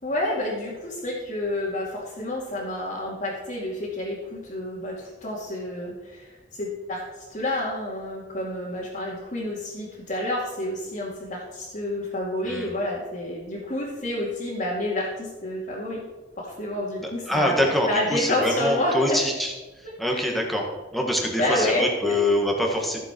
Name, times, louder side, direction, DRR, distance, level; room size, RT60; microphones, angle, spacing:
voice 1, 0.0-7.0 7.3-16.1 16.4-19.2 20.1-20.3 21.4-22.2, left 1 dB, 45° left, -8 dB, 2.4 m, -29 dB
voice 2, 17.0-19.5 19.8-20.7 20.9-23.0, left 1 dB, ahead, 0 dB, 1.7 m, -25 dB
15.0 x 7.2 x 4.5 m, 1.2 s
head